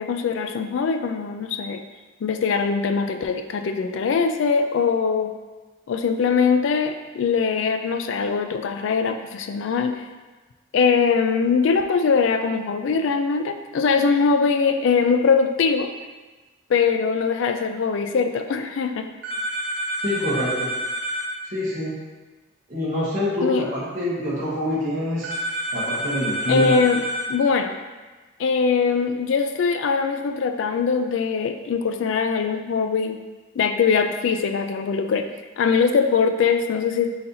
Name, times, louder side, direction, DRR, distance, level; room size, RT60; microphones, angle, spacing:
voice 1, 0.0-1.8 2.2-5.3 5.9-10.0 10.7-15.9 16.7-19.1 23.4-23.6 26.5-27.0 27.3-27.7 28.4-33.2 33.6-35.3 35.6-37.2, left 5 dB, 75° left, 7 dB, 0.3 m, -22 dB
sound 1, 19.2-21.3 25.2-27.3, equal, 60° right, 0.7 m, -28 dB
voice 2, 20.0-20.7 21.4-21.9 22.7-25.4 25.7-26.7, left 1 dB, 40° right, -9 dB, 1.0 m, -25 dB
4.1 x 3.9 x 2.7 m, 1.3 s
head